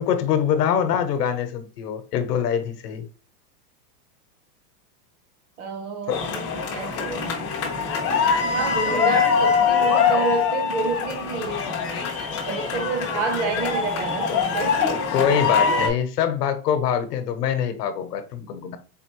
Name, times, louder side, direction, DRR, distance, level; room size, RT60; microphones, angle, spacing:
voice 1, 0.0-3.1 6.1-6.2 15.1-18.8, left 8 dB, 70° left, 0.9 m, -24 dB
voice 2, 5.6-7.8 8.2-11.8 12.1-15.1, right 4 dB, 45° right, 1.0 m, -29 dB
sound 1, 6.1-15.9, left 6 dB, 20° left, 0.5 m, -23 dB
4.2 x 3.4 x 2.9 m
supercardioid pair, 180°, 50 cm